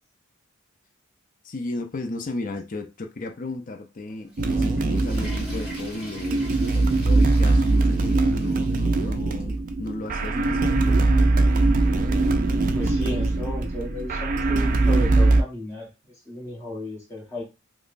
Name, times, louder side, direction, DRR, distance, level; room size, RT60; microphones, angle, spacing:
voice 1, 1.4-11.4, left 2 dB, 40° left, 0.5 m, -35 dB
Water / Toilet flush, 4.1-9.1 9.4-9.5 10.2-10.3 11.6-11.7, equal, 5° right, 1.5 m, -42 dB
sound 1, 4.4-15.4, right 2 dB, 40° right, 0.4 m, -21 dB
voice 2, 12.7-17.5, left 2 dB, 10° left, 1.1 m, -34 dB
5.1 x 2.0 x 2.5 m
head